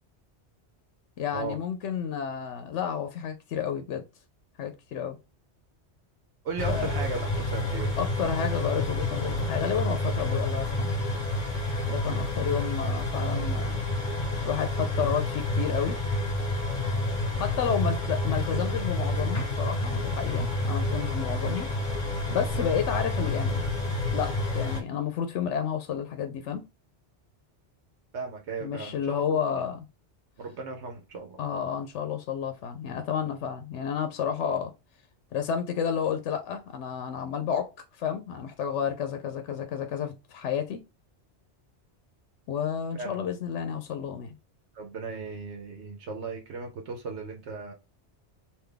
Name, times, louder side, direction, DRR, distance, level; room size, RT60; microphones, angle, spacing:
voice 1, 1.2-4.0 4.6-5.2 6.7-6.9 8.0-10.9 11.9-13.8 14.4-16.0 17.3-21.7 22.3-23.6 24.1-26.6 28.6-29.8 31.4-34.7 35.3-37.7 38.0-40.8 42.5-44.4, left 8 dB, 85° left, 0.9 m, -31 dB
voice 2, 6.4-7.9 12.1-12.4 28.1-29.7 30.4-31.4 42.9-43.2 44.7-47.7, right 4 dB, 75° right, 1.0 m, -36 dB
sound 1, 6.6-24.8, left 2 dB, 40° left, 1.3 m, -29 dB
3.4 x 2.6 x 3.7 m
omnidirectional pair, 1.2 m